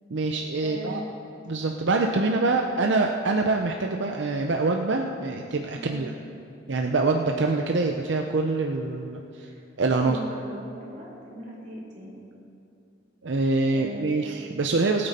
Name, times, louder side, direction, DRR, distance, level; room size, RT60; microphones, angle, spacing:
voice 1, 0.1-1.0 1.5-6.1 6.7-9.5 9.8-10.2 13.2-15.1, right 3 dB, 75° right, 3 dB, 0.6 m, -25 dB
voice 2, 0.6-1.0 5.7-6.0 9.3-9.6 10.0-12.2 13.7-14.3, right 1 dB, 40° right, -6 dB, 3.2 m, -39 dB
19.5 x 8.7 x 4.2 m, 2.7 s
head